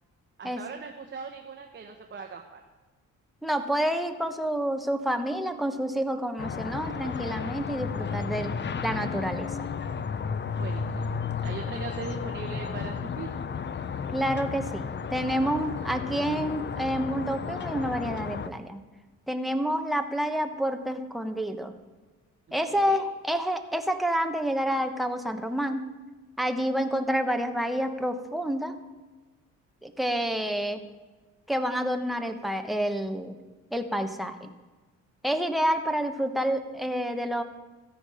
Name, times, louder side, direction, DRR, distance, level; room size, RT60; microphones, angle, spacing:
voice 1, 0.4-2.6 10.6-13.3 22.5-23.0, right 5 dB, 40° right, 3 dB, 1.2 m, -40 dB
voice 2, 3.4-8.5 8.8-9.7 14.1-18.8 19.3-21.7 22.5-25.8 26.4-28.8 29.8-30.8 31.5-33.3 33.7-34.5 35.2-37.4, equal, ahead, 5 dB, 1.2 m, -28 dB
sound 1, 6.4-18.5, left 6 dB, 35° left, 0.7 m, -33 dB
14.0 x 9.9 x 5.0 m, 1.3 s
cardioid pair, 90°, 30 cm